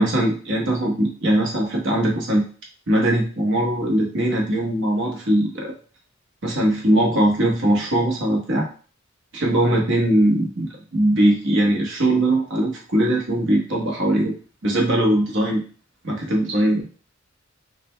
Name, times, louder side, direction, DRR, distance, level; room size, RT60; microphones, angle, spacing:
voice 1, 0.0-2.4 2.9-5.7 6.4-8.7 9.3-14.4 14.6-15.6 16.0-16.9, right 1 dB, 65° right, -1 dB, 1.1 m, -20 dB
5.0 x 3.2 x 2.2 m, 0.39 s
head